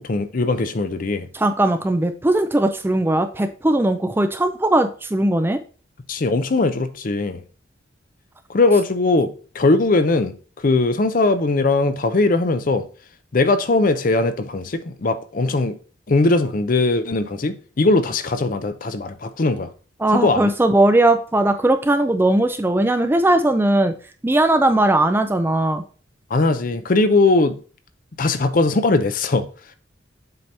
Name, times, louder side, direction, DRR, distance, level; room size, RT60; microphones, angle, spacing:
voice 1, 0.0-1.3 6.1-7.4 8.5-12.8 13.3-15.8 16.1-19.7 20.1-20.5 26.3-27.6 28.2-29.5, left 3 dB, 45° left, 0.5 m, -20 dB
voice 2, 1.3-5.6 20.0-23.9 24.2-25.8, right 1 dB, 10° right, 0.3 m, -18 dB
7.8 x 2.9 x 5.2 m
head